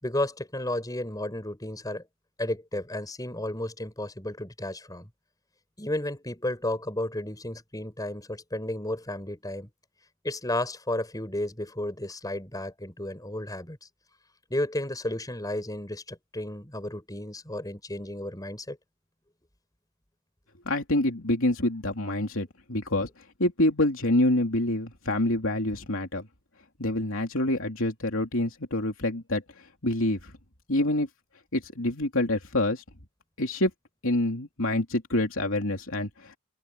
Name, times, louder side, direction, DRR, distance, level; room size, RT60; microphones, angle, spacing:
voice 1, 0.0-2.0 2.4-5.1 5.8-9.7 10.2-13.8 14.5-18.8, left 1 dB, 15° left, 5.9 m, -33 dB
voice 2, 20.6-23.1 23.4-26.3 26.8-29.4 29.8-30.3 30.7-31.1 31.5-32.8 33.4-33.7 34.0-36.4, left 1 dB, 60° left, 3.4 m, -26 dB
head